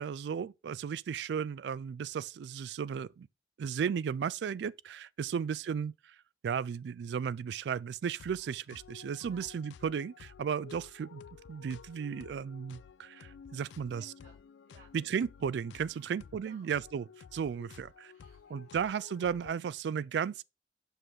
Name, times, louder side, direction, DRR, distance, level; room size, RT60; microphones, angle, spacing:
voice 1, 0.0-3.3 3.6-5.9 6.4-11.2 11.5-14.1 14.9-18.1 18.5-20.4, right 7 dB, 70° right, 0.3 m, -35 dB
sound 1, 8.2-19.6, left 6 dB, 85° left, 0.3 m, -53 dB
voice 2, 9.2-9.5 13.4-15.0 15.9-16.8 18.1-19.4, right 2 dB, 45° right, 3.9 m, -63 dB
6.2 x 5.4 x 3.6 m
head